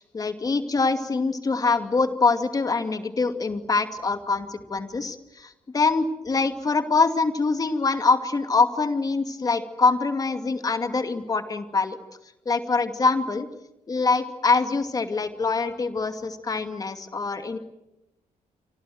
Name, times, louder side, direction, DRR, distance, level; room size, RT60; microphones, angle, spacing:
voice 1, 0.0-12.0 12.5-13.5 13.9-17.6, left 4 dB, 30° left, 8 dB, 2.5 m, -24 dB
27.5 x 26.0 x 8.0 m, 0.92 s
cardioid pair, 145°, 13 cm